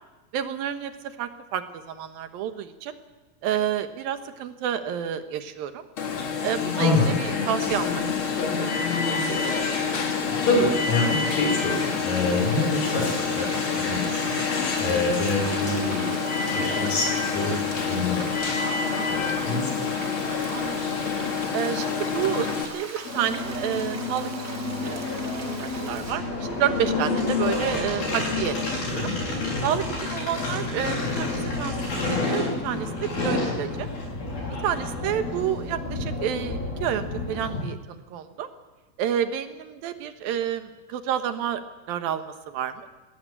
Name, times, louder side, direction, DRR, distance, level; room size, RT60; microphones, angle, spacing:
voice 1, 0.3-0.9 1.2-2.9 3.4-5.9 6.4-6.9 7.2-8.0 8.6-8.7 20.5-20.8 21.5-24.3 24.8-29.1 29.6-33.9 34.6-38.5 39.0-41.6 41.9-42.9, right 9 dB, 80° right, 9 dB, 3.0 m, -29 dB
Alarm, 6.0-22.7, left 5 dB, 40° left, 2.3 m, -27 dB
voice 2, 6.7-7.1 10.3-16.1 16.5-17.6 17.8-18.5 19.1-20.0 20.4-20.6 29.0-29.1, left 2 dB, 70° left, 2 dB, 7.2 m, -26 dB
Frying (food), 9.4-26.1, right 3 dB, 25° right, 2.0 m, -40 dB
sound 1, 23.0-37.6, left 3 dB, 90° left, 9.3 m, -29 dB
20.5 x 17.5 x 8.8 m, 1.2 s
omnidirectional pair, 4.1 m